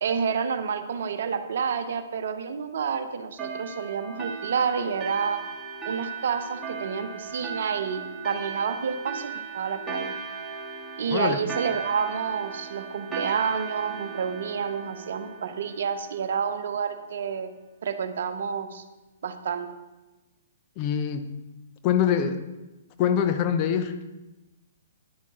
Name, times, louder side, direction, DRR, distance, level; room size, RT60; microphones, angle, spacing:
voice 1, 0.0-5.4 5.8-10.1 11.0-17.5 17.8-18.8 19.2-19.7, right 6 dB, 60° right, 8 dB, 0.8 m, -29 dB
sound 1, 3.4-16.5, right 5 dB, 10° right, 2.1 m, -37 dB
voice 2, 20.8-21.3 21.8-22.4 23.0-24.0, left 8 dB, 35° left, 8 dB, 0.8 m, -24 dB
10.5 x 8.4 x 3.7 m, 1.1 s
figure-of-eight pair, 120°, 0 cm